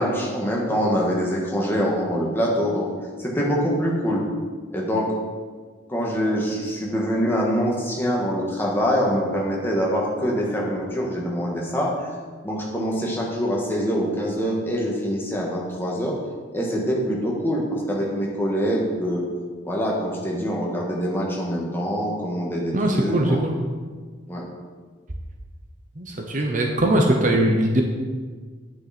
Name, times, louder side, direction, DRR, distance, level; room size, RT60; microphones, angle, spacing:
voice 1, 0.0-2.9 3.2-4.2 4.7-5.1 5.9-11.9 12.4-16.2 16.5-19.2 19.6-23.4 24.3-24.4, equal, 10° left, -3 dB, 1.7 m, -24 dB
voice 2, 22.7-23.5 26.0-27.8, right 1 dB, 40° right, 2 dB, 1.0 m, -21 dB
9.5 x 8.9 x 4.3 m, 1.5 s
head